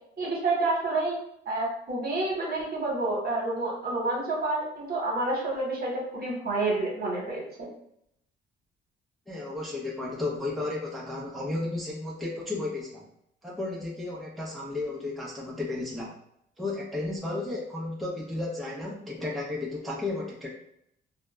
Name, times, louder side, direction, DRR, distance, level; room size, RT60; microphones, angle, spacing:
voice 1, 0.2-1.2 1.5-7.7, right 2 dB, 50° right, -2 dB, 1.0 m, -29 dB
voice 2, 9.3-13.1 13.4-16.1 16.6-20.5, left 2 dB, ahead, -4 dB, 0.6 m, -33 dB
2.7 x 2.0 x 2.2 m, 0.76 s
cardioid pair, 90°, 20 cm